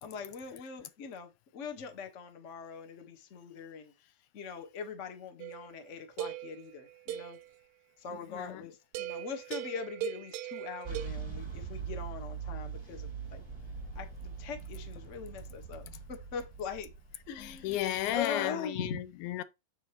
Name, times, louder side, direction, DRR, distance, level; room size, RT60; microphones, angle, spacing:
voice 1, 0.0-7.4 8.0-13.4 13.9-16.9 17.3-17.8 18.1-19.0, left 6 dB, 55° left, 0.8 m, -42 dB
sound 1, 5.4-7.5 8.9-11.1, right 12 dB, 90° right, 2.1 m, -40 dB
voice 2, 8.3-8.6 17.4-19.4, left 13 dB, 85° left, 2.1 m, -34 dB
sound 2, 10.8-18.2, right 6 dB, 35° right, 0.4 m, -42 dB
7.7 x 6.9 x 2.9 m
omnidirectional pair, 3.5 m